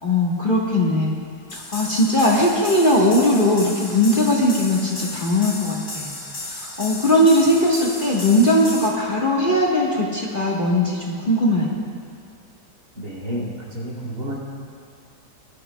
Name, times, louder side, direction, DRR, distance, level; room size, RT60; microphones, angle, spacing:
voice 1, 0.0-1.1 1.5-6.2 6.5-11.7, left 1 dB, 30° left, -4 dB, 1.3 m, -19 dB
sound 1, 1.5-8.9, left 2 dB, 80° left, 3.6 m, -34 dB
voice 2, 12.9-14.4, equal, 65° right, -5 dB, 3.4 m, -30 dB
21.5 x 12.0 x 2.2 m, 2.2 s
omnidirectional pair, 1.8 m